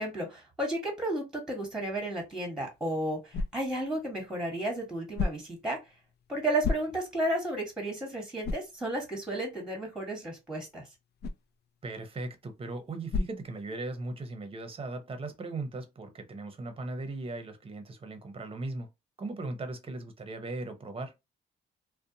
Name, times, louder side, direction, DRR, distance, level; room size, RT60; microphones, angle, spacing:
voice 1, 0.0-5.8 6.3-10.8, right 1 dB, 5° right, 1.2 m, -33 dB
sound 1, 2.4-14.2, left 3 dB, 55° left, 0.4 m, -39 dB
voice 2, 11.8-18.9 19.2-21.1, right 2 dB, 30° right, 0.7 m, -38 dB
2.5 x 2.2 x 2.7 m
cardioid pair, 90°, 20 cm